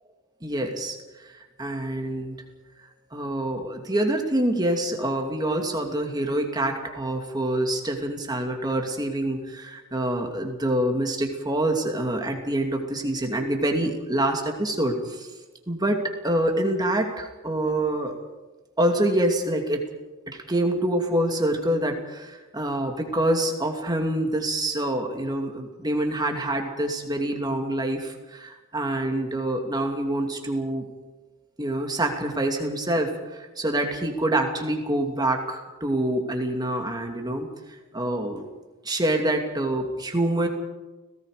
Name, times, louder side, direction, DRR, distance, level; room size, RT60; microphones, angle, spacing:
voice 1, 0.4-1.0 1.2-2.4 3.1-15.3 15.7-18.1 18.8-19.8 20.3-30.9 31.6-37.5 37.9-38.5 38.8-40.5, right 1 dB, 20° right, 3 dB, 2.6 m, -26 dB
29.5 x 18.0 x 5.1 m, 1.2 s
head